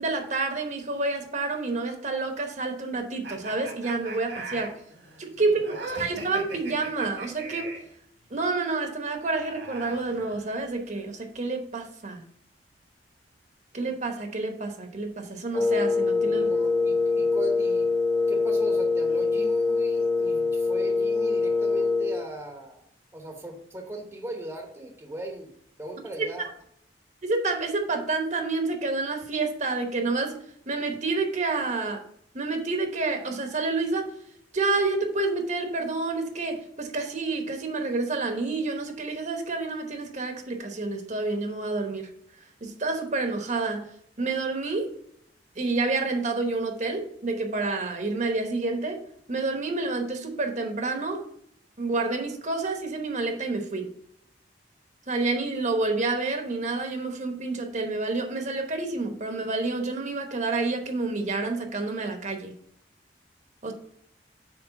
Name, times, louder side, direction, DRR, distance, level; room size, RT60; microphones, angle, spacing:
voice 1, 0.0-4.7 5.2-5.6 6.0-7.7 8.3-12.2 13.7-16.5 27.2-30.4 30.7-32.0 32.3-34.1 34.5-42.1 42.6-43.9 44.2-44.9 45.6-49.0 49.3-51.2 51.8-53.9 55.1-62.5 63.6-63.7, right 3 dB, 45° right, 5 dB, 1.0 m, -29 dB
sound 1, 3.2-7.9 9.1-10.8, right 3 dB, 85° right, 2.0 m, -40 dB
voice 2, 5.4-5.8 16.2-17.9 18.3-22.8 23.1-25.5 25.8-26.5, right 2 dB, 15° right, 3 dB, 1.0 m, -38 dB
Wind instrument woodwind instrument, 15.5-22.3, left 3 dB, 10° left, 0.8 m, -24 dB
7.9 x 3.3 x 5.8 m, 0.70 s
head